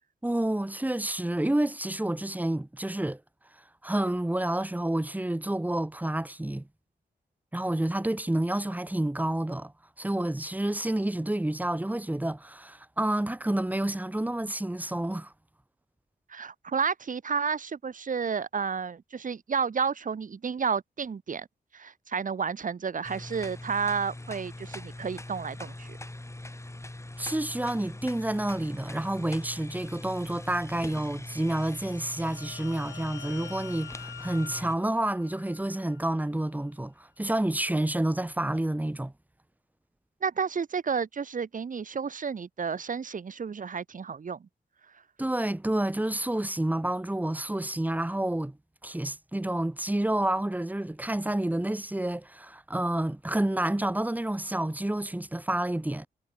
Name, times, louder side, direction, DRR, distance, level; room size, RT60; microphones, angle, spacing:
voice 1, 0.2-3.2 3.8-6.7 7.5-9.7 10.0-15.3 27.2-39.1 45.2-48.6 48.8-56.1, right 1 dB, 10° right, 0.9 m, -29 dB
voice 2, 16.3-21.5 21.7-26.0 40.2-44.5, right 6 dB, 45° right, 0.8 m, -31 dB
sound 1, 23.0-34.8, left 1 dB, 15° left, 1.9 m, -42 dB
sound 2, 31.6-36.1, left 8 dB, 85° left, 1.4 m, -47 dB
cardioid pair, 65°, 18 cm